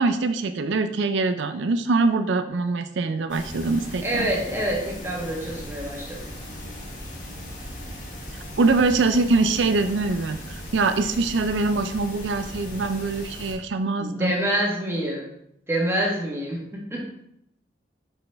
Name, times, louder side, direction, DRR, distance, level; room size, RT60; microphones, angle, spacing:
voice 1, 0.0-4.3 8.6-14.4, right 3 dB, 80° right, 8 dB, 0.4 m, -23 dB
sound 1, 3.3-13.5, left 1 dB, 45° left, 1.5 m, -38 dB
voice 2, 4.0-6.2 14.0-15.3 15.7-17.1, right 1 dB, 15° right, -3 dB, 1.3 m, -26 dB
6.0 x 5.5 x 3.4 m, 0.75 s
head